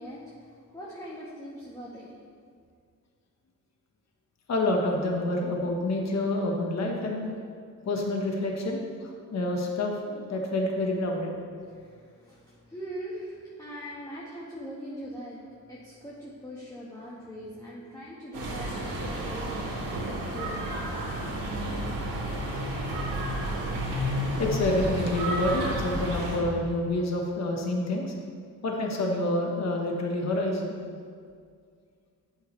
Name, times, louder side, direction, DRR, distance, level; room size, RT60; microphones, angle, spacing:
voice 1, 0.0-2.2 11.7-20.6, equal, 10° left, -6 dB, 1.4 m, -42 dB
voice 2, 4.5-7.4 7.8-11.3 24.4-28.1 28.6-30.7, left 1 dB, 50° left, 0 dB, 1.4 m, -28 dB
sound 1, 18.3-26.4, right 1 dB, 90° right, 2.6 m, -31 dB
11.0 x 8.7 x 3.3 m, 2.1 s
cardioid pair, 110°, 34 cm